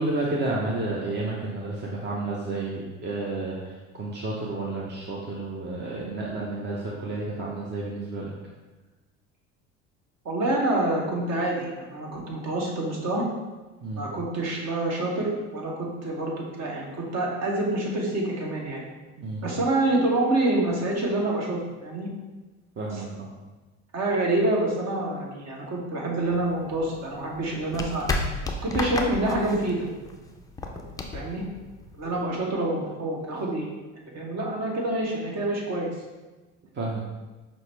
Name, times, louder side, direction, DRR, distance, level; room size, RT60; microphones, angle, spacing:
voice 1, 0.0-8.3 13.8-14.0 19.2-19.4 22.8-23.3 36.7-37.0, right 2 dB, 30° right, -3 dB, 0.6 m, -31 dB
voice 2, 10.2-13.2 13.9-18.8 19.4-22.1 22.9-23.0 23.9-28.1 28.6-29.9 31.1-31.5 31.9-33.7 34.1-35.9, right 2 dB, 45° right, -1 dB, 1.1 m, -27 dB
sound 1, 26.3-32.2, left 3 dB, 10° left, 0.3 m, -33 dB
5.5 x 2.1 x 3.3 m, 1.2 s
hypercardioid pair, 75°, 37 cm